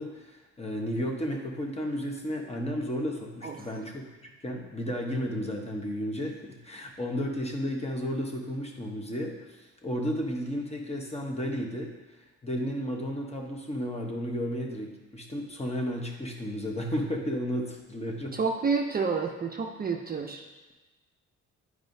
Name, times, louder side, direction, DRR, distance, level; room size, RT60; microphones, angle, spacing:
voice 1, 0.0-11.9 12.4-18.4, equal, 20° left, 1 dB, 1.0 m, -33 dB
voice 2, 18.3-20.4, right 5 dB, 30° right, 2 dB, 0.5 m, -29 dB
8.8 x 4.8 x 2.6 m, 1.2 s
cardioid pair, 90°, 30 cm